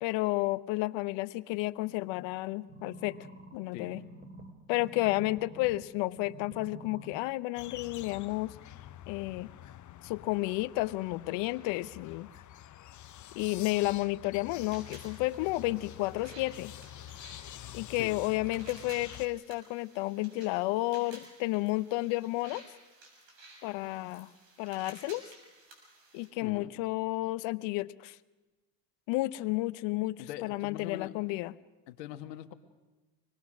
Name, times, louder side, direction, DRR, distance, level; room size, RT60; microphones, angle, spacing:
voice 1, 0.0-3.2 3.5-4.0 4.7-8.6 9.1-9.5 10.0-12.3 13.3-16.7 17.7-22.6 23.6-24.3 24.6-25.3 26.1-28.2 29.1-31.5, left 19 dB, 65° left, 17 dB, 0.8 m, -32 dB
sound 1, 2.7-5.8 6.2-7.2 7.7-7.8, right 2 dB, 20° right, 3.1 m, -48 dB
sound 2, 7.5-19.3, left 12 dB, 35° left, 0.9 m, -48 dB
sound 3, 14.6-26.3, right 2 dB, 65° right, 7.1 m, -55 dB
voice 2, 30.2-31.2 31.9-32.5, left 12 dB, 85° left, 10 dB, 1.5 m, -42 dB
25.5 x 21.0 x 6.2 m, 1.2 s
hypercardioid pair, 80°, 48 cm